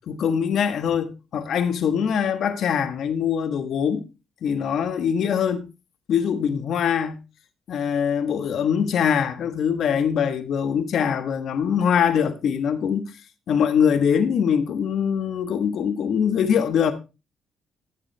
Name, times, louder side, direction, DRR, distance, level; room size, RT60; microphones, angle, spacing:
voice 1, 0.1-4.0 4.4-5.7 6.1-7.2 7.7-13.1 13.5-16.9, left 7 dB, 70° left, 1.4 m, -23 dB
14.5 x 7.3 x 3.4 m
cardioid pair, 90°, 0 cm